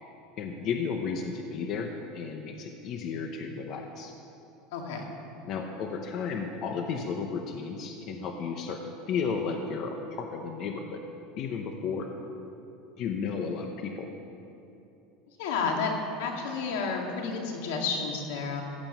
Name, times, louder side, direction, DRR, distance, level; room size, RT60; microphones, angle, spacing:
voice 1, 0.4-4.1 5.4-8.8 9.1-11.0 11.4-12.1 13.0-14.1, left 5 dB, 40° left, 3 dB, 0.9 m, -33 dB
voice 2, 4.7-5.1 15.4-15.9 16.2-18.6, left 5 dB, 85° left, 1 dB, 2.2 m, -31 dB
15.0 x 7.5 x 7.3 m, 2.8 s
supercardioid pair, 165°, 0 cm